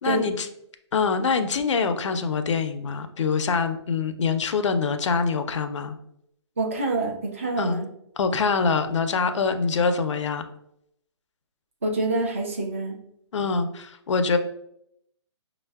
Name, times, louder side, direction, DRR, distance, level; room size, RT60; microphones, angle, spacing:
voice 1, 0.0-0.5 0.9-6.0 7.6-7.8 8.2-10.4 13.3-14.4, left 5 dB, 75° left, 8 dB, 0.4 m, -24 dB
voice 2, 6.6-7.9 11.8-13.0, right 2 dB, 30° right, 1 dB, 0.4 m, -26 dB
5.2 x 2.0 x 2.2 m, 0.76 s
hypercardioid pair, 180°, 15 cm